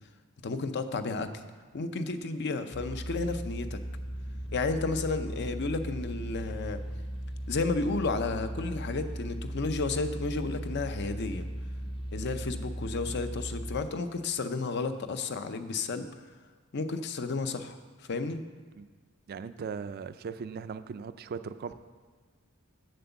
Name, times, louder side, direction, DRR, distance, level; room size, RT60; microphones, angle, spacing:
voice 1, 0.4-1.3 1.7-3.8 4.5-6.8 7.5-11.5 12.1-16.1 16.7-17.8 18.1-18.4, left 3 dB, 55° left, 9 dB, 0.6 m, -32 dB
sound 1, 2.7-13.8, equal, 25° left, 0.9 m, -37 dB
voice 2, 19.3-21.7, right 5 dB, 45° right, 12 dB, 0.3 m, -38 dB
7.8 x 7.6 x 6.9 m, 1.5 s
head